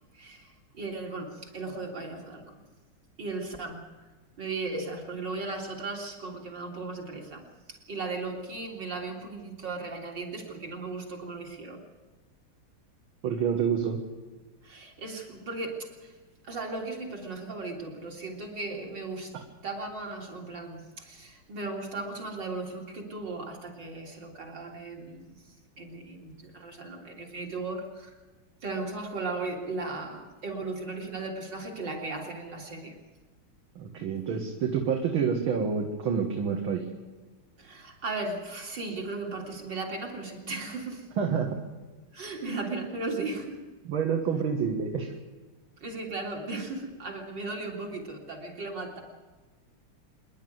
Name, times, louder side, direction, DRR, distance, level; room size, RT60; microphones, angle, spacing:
voice 1, 0.1-2.6 3.2-3.8 4.4-7.4 7.7-11.9 14.6-16.2 16.4-19.4 19.6-28.1 28.6-33.0 37.6-41.1 42.1-43.6 45.8-49.0, right 3 dB, 55° right, 0 dB, 4.0 m, -36 dB
voice 2, 13.2-14.0 33.8-36.9 41.2-41.6 43.9-45.1, right 6 dB, 70° right, 2 dB, 2.5 m, -28 dB
26.0 x 11.0 x 9.4 m, 1.3 s
omnidirectional pair, 2.4 m